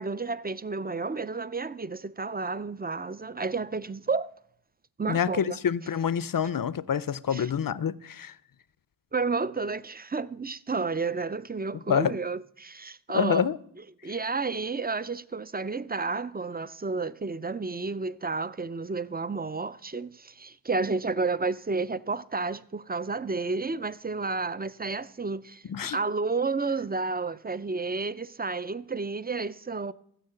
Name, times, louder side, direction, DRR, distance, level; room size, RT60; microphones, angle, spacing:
voice 1, 0.0-4.3 5.0-5.6 7.3-7.5 9.1-13.5 14.0-25.6 25.9-29.9, right 4 dB, 20° right, 0.4 m, -31 dB
voice 2, 5.1-8.3 11.9-12.1 13.1-13.6 25.7-26.0, left 7 dB, 45° left, 0.5 m, -27 dB
14.0 x 6.4 x 7.8 m
wide cardioid pair, 45°, 47 cm